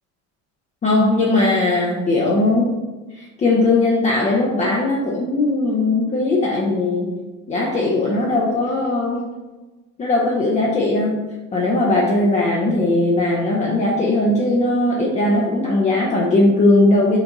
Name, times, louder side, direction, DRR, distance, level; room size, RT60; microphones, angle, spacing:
voice 1, 0.8-2.7 3.1-7.1 7.5-9.3 10.0-11.2 11.5-17.2, left 2 dB, 20° left, -3 dB, 0.7 m, -19 dB
5.9 x 4.1 x 3.9 m, 1.2 s
cardioid pair, 145°, 36 cm